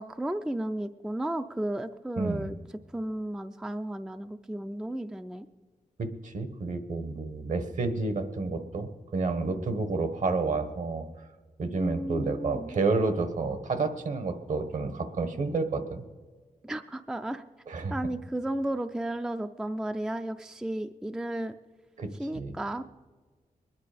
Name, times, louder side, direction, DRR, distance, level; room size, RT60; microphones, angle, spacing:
voice 1, 0.0-2.6 2.9-5.5 11.8-12.8 16.6-17.4 17.9-21.6 22.2-22.8, right 1 dB, 5° right, 9 dB, 0.4 m, -33 dB
voice 2, 2.2-2.5 6.0-11.1 11.6-16.0 17.7-18.0 22.0-22.5, right 3 dB, 60° right, 9 dB, 1.3 m, -30 dB
21.5 x 10.5 x 5.0 m, 1.4 s
wide cardioid pair, 130°, 14 cm